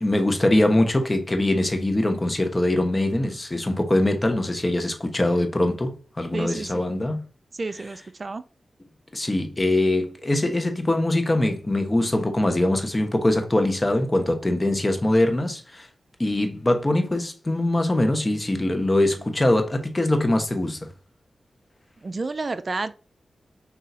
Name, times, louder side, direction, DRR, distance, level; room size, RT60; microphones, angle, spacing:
voice 1, 0.0-7.2 9.1-15.9 16.2-20.9, left 1 dB, 30° left, 1.0 m, -22 dB
voice 2, 6.3-6.8 7.5-8.4 22.0-22.9, right 3 dB, 50° right, 0.3 m, -30 dB
6.5 x 2.8 x 2.7 m
cardioid pair, 45°, 0 cm